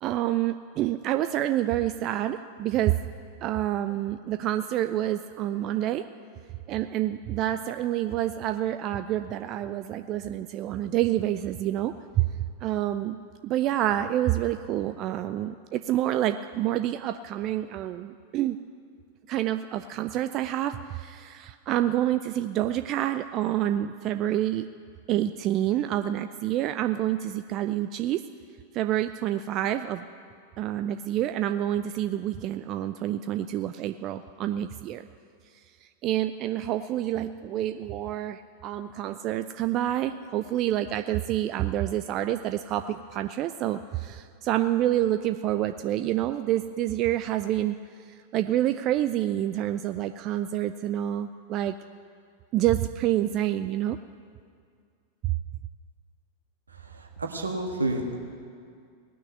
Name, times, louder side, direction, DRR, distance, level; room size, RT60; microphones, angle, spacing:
voice 1, 0.0-2.9 3.4-6.0 6.7-12.3 12.6-13.2 13.4-18.6 19.3-24.7 25.1-28.2 28.7-30.0 30.6-35.0 35.8-47.8 48.1-51.8 52.5-54.0, right 12 dB, 35° right, 9 dB, 0.4 m, -28 dB
voice 2, 56.9-58.2, right 2 dB, 75° right, 2 dB, 1.6 m, -30 dB
18.5 x 6.2 x 9.4 m, 2.2 s
figure-of-eight pair, 90°, 0 cm